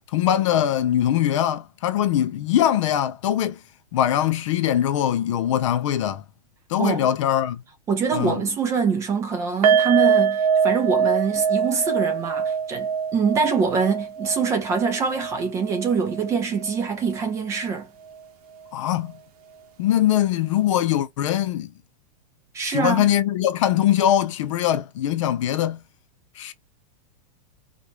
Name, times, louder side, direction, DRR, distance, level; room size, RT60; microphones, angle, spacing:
voice 1, 0.1-3.6 3.9-6.2 6.7-7.6 8.1-8.4 18.7-19.1 19.8-21.7 22.6-25.8 26.4-26.5, left 11 dB, 45° left, 0.7 m, -22 dB
voice 2, 7.9-17.9 22.5-23.1, right 5 dB, 15° right, 0.8 m, -24 dB
sound 1, 9.6-16.8 17.1-17.3 17.7-17.8, right 7 dB, 60° right, 1.2 m, -23 dB
4.8 x 2.6 x 2.9 m
supercardioid pair, 170°, 21 cm